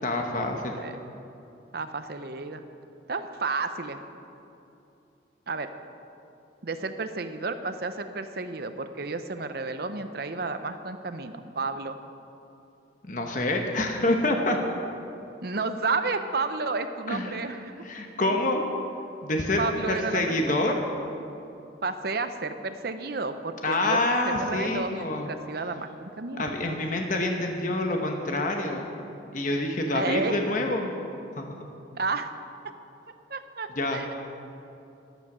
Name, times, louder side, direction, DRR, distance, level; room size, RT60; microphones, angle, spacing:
voice 1, 0.0-0.8 13.1-14.6 17.1-17.4 17.8-18.6 19.2-19.6 19.9-20.8 23.6-25.3 26.4-28.9 29.3-30.9 31.4-31.7 33.8-34.0, left 2 dB, 45° left, 2 dB, 1.1 m, -27 dB
voice 2, 1.7-2.6 3.1-4.0 5.5-5.7 6.6-12.0 15.4-17.7 18.2-18.4 19.6-20.8 21.8-26.5 29.9-30.4 31.9-32.3 33.3-34.1, right 3 dB, 55° right, 9 dB, 0.7 m, -31 dB
13.0 x 10.5 x 6.1 m, 2.8 s
head